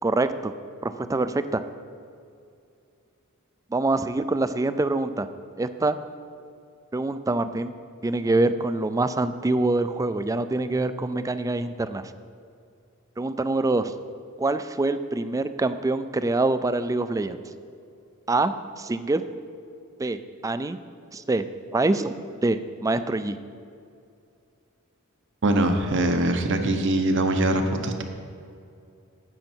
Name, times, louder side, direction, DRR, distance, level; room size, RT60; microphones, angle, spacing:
voice 1, 0.0-0.5 0.8-1.6 3.7-5.3 5.6-6.0 6.9-7.7 8.0-12.1 13.2-14.0 14.4-17.4 18.3-19.3 20.0-20.8 21.1-22.1 22.4-23.4, right 2 dB, 15° right, 11 dB, 0.3 m, -25 dB
voice 2, 25.4-28.0, right 1 dB, 60° right, 6 dB, 0.9 m, -22 dB
12.0 x 8.6 x 4.5 m, 2.5 s
head